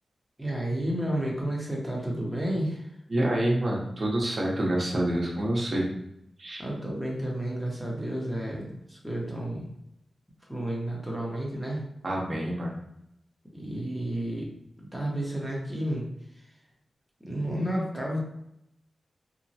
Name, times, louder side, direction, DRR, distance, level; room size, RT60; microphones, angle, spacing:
voice 1, 0.4-2.9 6.6-9.7 10.5-11.9 13.5-14.5 14.9-16.1 17.2-18.2, right 1 dB, ahead, -3 dB, 0.8 m, -31 dB
voice 2, 3.1-5.9 6.4-6.6 12.0-12.8, right 1 dB, 50° right, -3 dB, 0.7 m, -27 dB
2.9 x 2.1 x 2.7 m, 0.80 s
wide cardioid pair, 75°, 0 cm